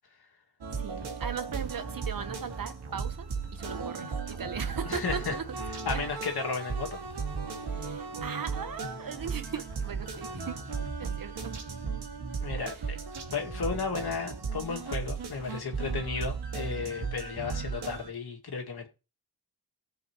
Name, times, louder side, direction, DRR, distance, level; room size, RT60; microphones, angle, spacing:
sound 1, 0.6-18.1, right 5 dB, 80° right, 2.2 m, -36 dB
voice 1, 0.8-5.4 5.9-6.0 7.7-10.6 11.0-11.6, right 7 dB, 55° right, 1.1 m, -38 dB
sound 2, 1.3-17.0, right 2 dB, 40° right, 1.8 m, -53 dB
voice 2, 4.9-5.3 5.9-7.0 12.4-13.0 13.3-18.9, left 5 dB, 70° left, 2.2 m, -34 dB
19.0 x 7.1 x 3.1 m
wide cardioid pair, 90°, 39 cm